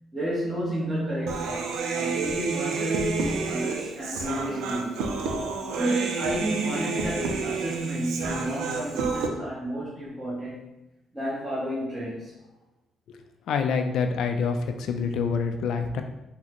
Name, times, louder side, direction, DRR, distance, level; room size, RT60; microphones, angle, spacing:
voice 1, 0.1-5.0 5.8-10.6 11.1-12.3, right 1 dB, 15° right, -8 dB, 0.8 m, -31 dB
Human voice, 1.3-9.3, right 4 dB, 85° right, 0.4 m, -30 dB
voice 2, 13.5-16.0, left 5 dB, 75° left, 6 dB, 0.3 m, -26 dB
3.7 x 2.0 x 2.9 m, 0.92 s
cardioid pair, 90°, 0 cm